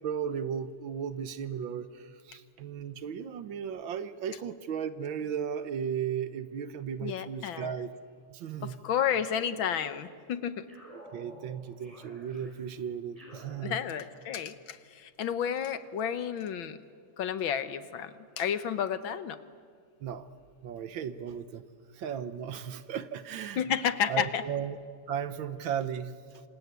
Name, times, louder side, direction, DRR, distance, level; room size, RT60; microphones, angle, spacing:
voice 1, 0.0-7.9 8.3-8.7 10.9-13.8 20.0-20.3 20.6-21.6 21.9-23.6 24.1-24.8 25.1-26.4, right 8 dB, 65° right, 13 dB, 1.6 m, -35 dB
voice 2, 7.0-7.7 8.6-10.7 13.6-16.8 17.2-19.4 23.6-24.4, left 8 dB, 65° left, 12 dB, 1.7 m, -31 dB
sound 1, 9.2-10.2 10.7-14.3, equal, 15° right, 5.9 m, -53 dB
27.0 x 27.0 x 8.2 m, 2.1 s
omnidirectional pair, 2.4 m